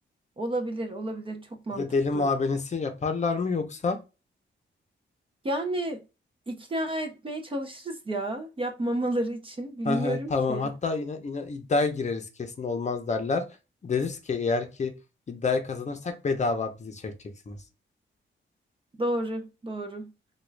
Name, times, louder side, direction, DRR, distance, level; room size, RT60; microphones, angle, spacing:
voice 1, 0.4-1.9 2.1-2.3 5.4-6.0 6.5-10.7 19.0-20.1, right 1 dB, 25° right, 0.5 m, -31 dB
voice 2, 1.7-4.0 9.9-13.4 13.8-14.9 15.3-17.1 17.5-17.6, left 4 dB, 35° left, 0.6 m, -28 dB
3.5 x 2.3 x 3.1 m
wide cardioid pair, 150°, 20 cm